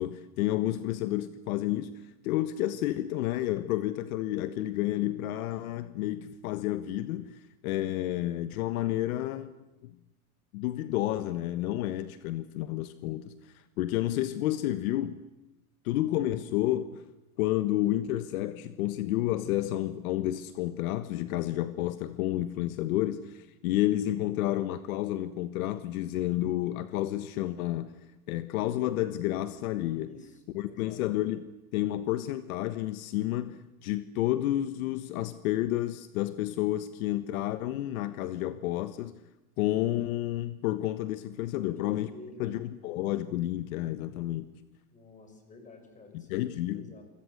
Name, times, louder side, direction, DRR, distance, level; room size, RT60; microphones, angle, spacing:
voice 1, 0.0-1.9 2.2-9.5 9.8-9.9 10.5-13.3 13.8-15.2 15.8-17.0 17.4-27.9 28.3-30.1 30.5-31.4 31.7-39.1 39.6-42.1 42.4-44.5 46.3-46.9, left 14 dB, 70° left, 1.5 m, -30 dB
voice 2, 29.9-31.0 41.6-42.6 44.9-47.0, left 2 dB, 15° left, 6.1 m, -51 dB
27.0 x 25.5 x 8.1 m
supercardioid pair, 150°, 44 cm